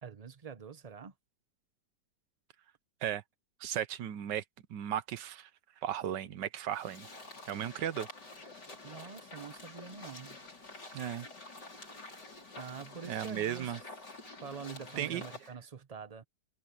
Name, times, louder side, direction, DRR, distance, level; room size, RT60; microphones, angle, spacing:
voice 1, 0.0-1.1 8.8-10.4 12.6-13.7 14.4-16.2, right 6 dB, 30° right, 0.7 m, -45 dB
voice 2, 3.6-4.4 4.7-5.5 5.8-7.1 7.5-8.1 10.9-11.3 13.1-13.8 15.0-15.2, right 10 dB, 70° right, 1.5 m, -35 dB
sound 1, 6.7-15.5, left 2 dB, 65° left, 6.4 m, -49 dB
omnidirectional pair, 2.0 m